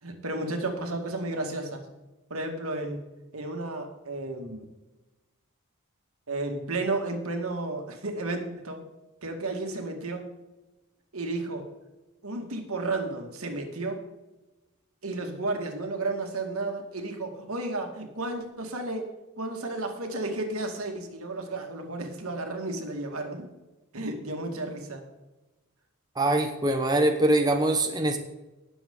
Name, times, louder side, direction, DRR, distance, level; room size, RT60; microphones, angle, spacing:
voice 1, 0.0-1.8 2.3-3.0 3.3-4.6 6.3-8.8 9.2-10.3 11.1-11.7 12.2-14.1 15.0-19.1 19.4-23.5 23.9-25.0, right 2 dB, 75° right, 3 dB, 2.2 m, -32 dB
voice 2, 26.2-28.2, right 1 dB, 20° right, 4 dB, 1.0 m, -23 dB
19.0 x 7.2 x 3.9 m, 1.1 s
head